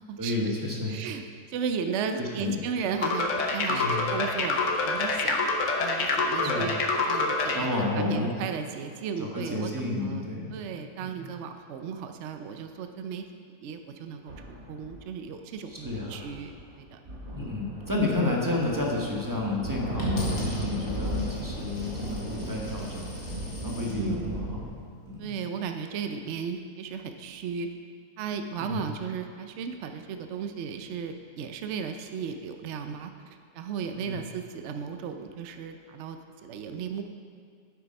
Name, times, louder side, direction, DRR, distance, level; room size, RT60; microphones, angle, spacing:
voice 1, 0.2-0.9 2.1-2.6 3.7-4.1 6.4-6.7 7.5-8.4 9.2-10.6 11.0-11.1 15.7-16.2 17.3-23.1 23.6-24.5 25.1-25.3 28.6-28.8 34.0-34.2, left 2 dB, 15° right, -2 dB, 1.0 m, -31 dB
voice 2, 0.9-1.2 1.5-5.4 5.8-6.8 7.1-7.7 7.9-10.2 10.5-13.2 13.6-14.4 14.7-16.5 16.8-17.0 17.4-17.5 23.9-24.5 25.2-27.7 28.2-33.1 33.5-37.0, right 6 dB, 65° right, 6 dB, 0.7 m, -35 dB
sound 1, 3.0-7.6, left 3 dB, 55° left, 1.1 m, -26 dB
sound 2, 14.3-15.0 15.7-16.8 17.1-24.7, right 1 dB, 35° right, 1.4 m, -35 dB
Coin (dropping), 20.0-24.0 24.7-25.1, left 1 dB, 80° left, 2.4 m, -45 dB
8.3 x 7.5 x 5.2 m, 2.2 s
omnidirectional pair, 1.7 m